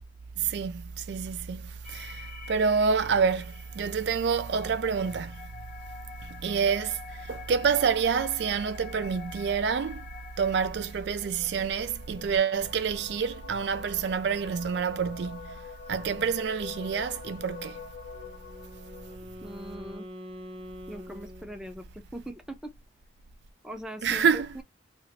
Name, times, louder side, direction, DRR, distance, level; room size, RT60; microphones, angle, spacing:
voice 1, 0.4-5.5 6.2-10.0 10.4-15.6 15.9-17.8 24.0-24.5, right 6 dB, 65° right, 0.4 m, -28 dB
sound 1, 1.8-19.2, left 5 dB, 45° left, 1.0 m, -46 dB
Wind instrument woodwind instrument, 18.1-22.0, equal, 30° right, 1.0 m, -45 dB
voice 2, 19.4-20.1 20.9-22.7 23.6-24.6, right 1 dB, 5° right, 0.5 m, -41 dB
2.8 x 2.5 x 3.1 m
head